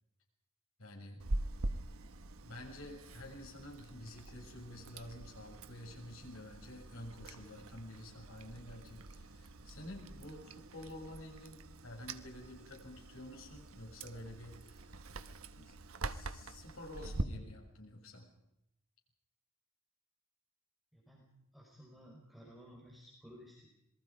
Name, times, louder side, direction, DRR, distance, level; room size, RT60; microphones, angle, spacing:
voice 1, 0.8-1.2 2.4-15.0 15.6-15.7 16.0-18.3, left 1 dB, 80° left, 2 dB, 7.1 m, -50 dB
Chewing mastication, 1.2-17.2, right 2 dB, 85° right, 1.2 m, -45 dB
voice 2, 20.9-21.2 21.5-23.7, equal, ahead, -2 dB, 4.8 m, -56 dB
27.5 x 21.5 x 5.1 m, 0.82 s
head